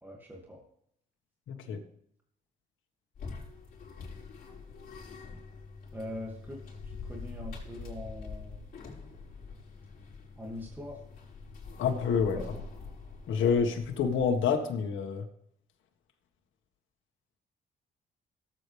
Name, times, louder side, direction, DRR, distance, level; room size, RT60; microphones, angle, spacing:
voice 1, 0.0-0.6 5.9-6.6 6.9-8.7 10.4-11.0 12.3-12.6, left 1 dB, 10° right, -1 dB, 2.4 m, -42 dB
voice 2, 1.5-1.8 11.8-12.4 13.3-15.2, left 6 dB, 80° left, 3 dB, 1.7 m, -28 dB
sound 1, 3.1-14.6, left 4 dB, 50° left, 5.0 m, -45 dB
17.5 x 8.5 x 3.5 m, 0.69 s
cardioid pair, 90°, 20 cm